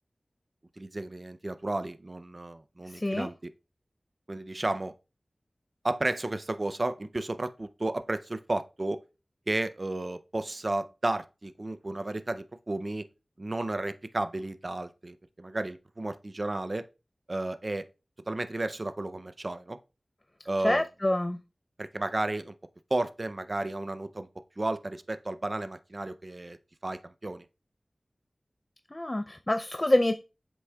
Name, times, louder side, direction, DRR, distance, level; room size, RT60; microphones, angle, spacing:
voice 1, 0.8-3.5 4.3-4.9 5.8-9.0 9.5-13.1 13.4-16.8 17.3-17.9 18.3-19.8 20.5-20.8 21.8-22.5 22.9-24.3 24.6-26.6 26.8-27.4, right 2 dB, 45° right, 0.5 m, -33 dB
voice 2, 2.9-3.3 20.6-21.4 28.9-30.2, left 1 dB, 25° left, 0.4 m, -26 dB
7.8 x 6.0 x 2.3 m
wide cardioid pair, 60°, 0 cm